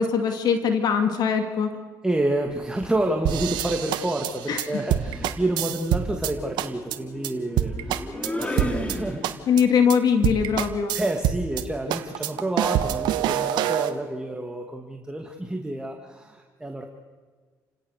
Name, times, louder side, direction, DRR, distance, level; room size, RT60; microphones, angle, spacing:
voice 1, 0.0-1.8 4.5-4.8 9.5-11.0, left 6 dB, 65° left, 6 dB, 2.6 m, -22 dB
voice 2, 2.0-8.0 8.4-9.5 10.9-16.9, right 1 dB, 10° right, 2 dB, 2.4 m, -29 dB
sound 1, 2.6-3.0 4.4-9.7, left 1 dB, 15° left, 3.5 m, -35 dB
sound 2, 3.2-6.3 6.6-7.0 7.2-7.3 7.6-9.0 9.2-9.6 9.9-10.0 10.2-11.6 11.9-13.9, right 11 dB, 80° right, 1.4 m, -26 dB
30.0 x 17.0 x 6.8 m, 1.5 s
cardioid pair, 85°, 8 cm